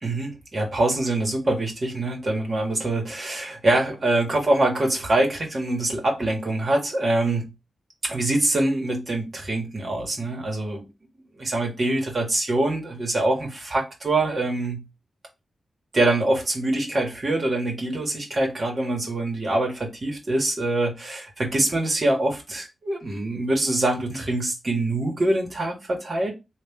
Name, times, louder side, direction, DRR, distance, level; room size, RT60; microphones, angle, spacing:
voice 1, 0.0-7.5 8.0-10.9 11.4-14.8 15.9-26.3, right 2 dB, 50° right, 1.6 m, -24 dB
3.3 x 2.6 x 3.6 m
cardioid pair, 55°, 0 cm